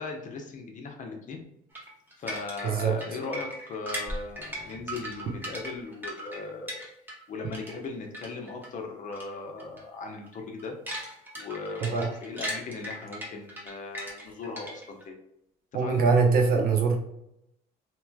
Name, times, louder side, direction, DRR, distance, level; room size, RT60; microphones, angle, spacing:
voice 1, 0.0-1.4 2.2-6.9 7.3-10.8 11.4-15.2 15.7-16.0, left 3 dB, 50° left, 2 dB, 0.8 m, -38 dB
sound 1, 1.7-7.3 7.5-8.7 9.1-9.3 9.6-9.8 10.2-15.0, equal, 10° right, 1.1 m, -38 dB
voice 2, 15.7-17.0, right 4 dB, 60° right, 1 dB, 0.8 m, -23 dB
3.1 x 2.9 x 2.2 m, 0.80 s
cardioid pair, 110°, 17 cm